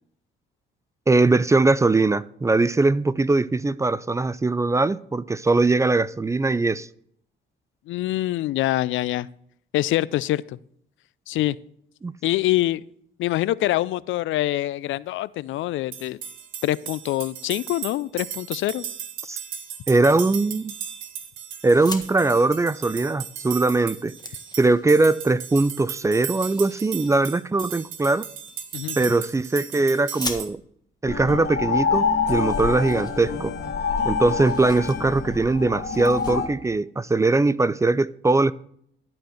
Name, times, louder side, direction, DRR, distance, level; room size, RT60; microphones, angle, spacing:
voice 1, 1.1-6.9 12.0-12.1 19.3-19.4 19.9-20.7 21.6-24.1 24.6-28.3 29.0-30.6 31.0-33.5 34.0-38.5, right 3 dB, 15° right, 0.3 m, -21 dB
voice 2, 7.9-9.3 9.7-10.6 11.3-11.6 12.2-12.8 13.2-16.2 16.6-18.8 28.7-29.0, left 15 dB, 75° left, 0.4 m, -25 dB
sound 1, 15.9-30.5, right 9 dB, 80° right, 1.2 m, -36 dB
sound 2, 21.6-22.1 23.4-23.5 23.8-25.2 26.3-27.2 28.5-29.4 30.0-30.9 31.8-31.9 32.1-32.2 32.5-33.8 34.1-35.0 35.3-35.5 35.9-36.3, left 3 dB, 20° left, 1.5 m, -40 dB
sound 3, 31.0-36.5, left 5 dB, 55° left, 2.1 m, -26 dB
12.0 x 4.4 x 6.4 m
cardioid pair, 90°, 20 cm